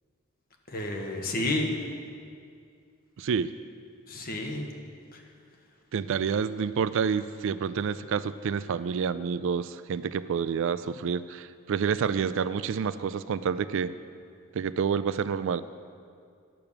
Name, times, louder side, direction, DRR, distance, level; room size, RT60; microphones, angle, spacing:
voice 1, 0.7-1.7 4.1-4.7, left 2 dB, 45° left, 2 dB, 1.3 m, -30 dB
voice 2, 3.2-3.5 5.9-13.9 14.5-15.6, right 6 dB, 65° right, 14 dB, 0.4 m, -28 dB
10.5 x 6.8 x 7.2 m, 2.3 s
head